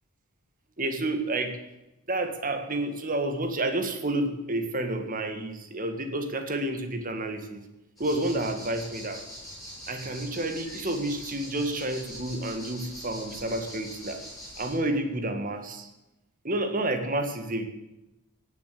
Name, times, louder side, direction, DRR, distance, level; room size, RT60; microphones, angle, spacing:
voice 1, 0.8-1.6 2.1-7.6 8.0-9.2 9.9-14.2 14.6-15.9 16.4-17.6, right 1 dB, 40° right, 7 dB, 1.7 m, -30 dB
sound 1, 8.0-14.8, equal, ahead, 7.1 m, -43 dB
17.5 x 7.3 x 8.4 m, 0.94 s
head